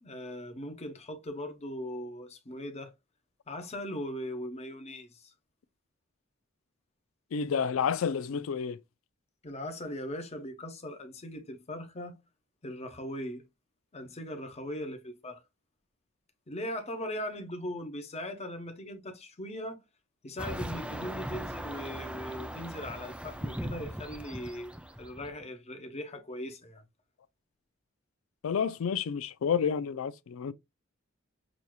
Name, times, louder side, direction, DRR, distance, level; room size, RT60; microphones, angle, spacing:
voice 1, 0.0-2.9 3.5-5.3 9.4-12.2 12.6-13.4 13.9-15.4 16.5-19.8 20.2-26.8, left 1 dB, 30° left, 0.9 m, -39 dB
voice 2, 7.3-8.8 28.4-30.5, left 7 dB, 70° left, 0.4 m, -30 dB
sound 1, 20.4-25.4, right 1 dB, 5° right, 0.4 m, -39 dB
6.1 x 2.8 x 2.2 m
head